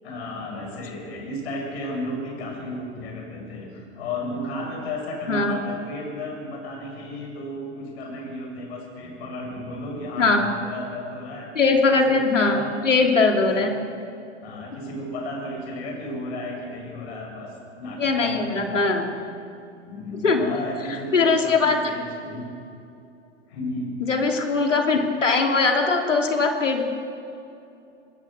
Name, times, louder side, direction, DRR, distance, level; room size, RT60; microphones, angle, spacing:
voice 1, 0.0-11.5 11.9-12.7 13.4-13.6 14.4-19.0 19.8-22.5 23.5-24.0, left 1 dB, 60° left, 1 dB, 7.6 m, -33 dB
voice 2, 11.5-12.6 12.8-13.7 18.0-19.0 20.2-20.4 21.1-21.8 24.0-26.8, left 4 dB, 85° left, 3 dB, 2.9 m, -20 dB
24.5 x 19.5 x 6.8 m, 2.7 s
hypercardioid pair, 110°, 36 cm